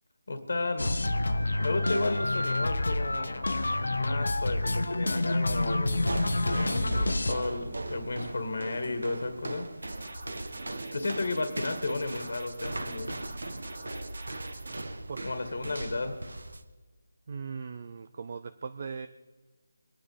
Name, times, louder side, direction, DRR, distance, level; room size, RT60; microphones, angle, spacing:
voice 1, 0.3-3.5 3.9-6.2 6.5-9.7 10.9-13.1 15.2-16.2, left 2 dB, 60° left, 7 dB, 1.8 m, -33 dB
sound 1, 0.8-7.3, left 2 dB, 85° left, 1.3 m, -28 dB
sound 2, 5.9-16.6, right 2 dB, 90° right, 1.4 m, -39 dB
sound 3, 9.8-14.8, right 2 dB, 70° right, 2.3 m, -42 dB
voice 2, 17.3-19.1, right 5 dB, 40° right, 11 dB, 0.6 m, -39 dB
24.0 x 9.6 x 5.1 m, 1.3 s
figure-of-eight pair, 170°, 0 cm